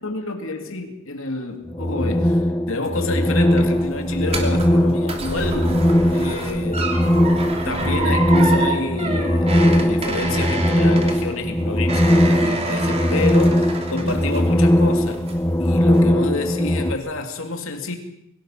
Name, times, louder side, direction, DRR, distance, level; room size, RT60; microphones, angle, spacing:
voice 1, 0.0-6.9 7.6-15.2 15.6-18.0, left 2 dB, 65° left, 5 dB, 2.9 m, -28 dB
sound 1, 1.7-16.9, equal, 10° left, 0.9 m, -19 dB
sound 2, 3.1-14.7 15.0-15.5 15.9-16.0, right 3 dB, 30° right, 3.0 m, -29 dB
23.5 x 18.5 x 6.0 m, 0.80 s
head